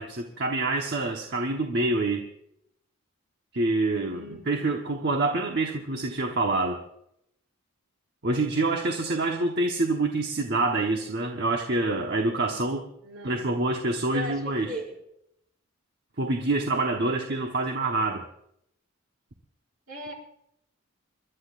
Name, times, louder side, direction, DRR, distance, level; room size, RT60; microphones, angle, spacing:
voice 1, 0.0-2.3 3.5-6.8 8.2-12.9 13.2-14.7 16.2-18.2, right 2 dB, 50° right, 2 dB, 1.1 m, -26 dB
voice 2, 4.1-4.8 13.0-13.5 14.1-14.9 19.9-20.1, equal, 70° right, -1 dB, 5.9 m, -38 dB
28.5 x 12.0 x 2.5 m, 0.76 s
head